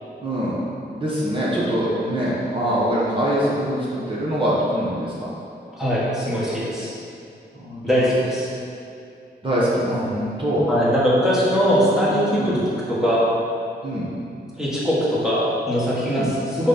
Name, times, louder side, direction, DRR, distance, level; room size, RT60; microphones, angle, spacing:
voice 1, 0.2-0.6 1.0-5.3 7.5-8.3 9.4-10.6 11.9-12.1 12.4-12.6 13.8-14.1 16.0-16.3, equal, 30° right, -7 dB, 1.2 m, -24 dB
voice 2, 5.8-6.9 7.8-8.5 10.7-12.6 12.9-13.3 14.6-16.7, equal, 5° right, -8 dB, 1.6 m, -21 dB
6.1 x 4.1 x 5.8 m, 2.5 s
wide cardioid pair, 165°, 17 cm